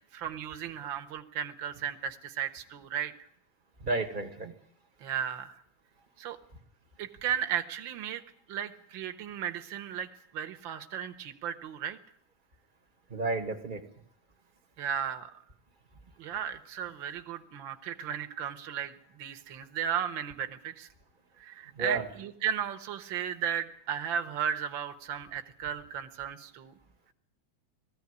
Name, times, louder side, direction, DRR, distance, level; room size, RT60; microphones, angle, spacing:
voice 1, 0.1-3.1 5.0-5.6 6.2-6.4 7.0-8.2 8.5-12.0 14.8-15.3 16.2-20.9 21.4-26.7, right 9 dB, 55° right, 6 dB, 1.5 m, -35 dB
voice 2, 3.8-4.5 13.1-13.8 21.7-22.0, right 2 dB, 25° right, 5 dB, 1.1 m, -31 dB
19.0 x 15.0 x 9.7 m, 0.66 s
omnidirectional pair, 3.4 m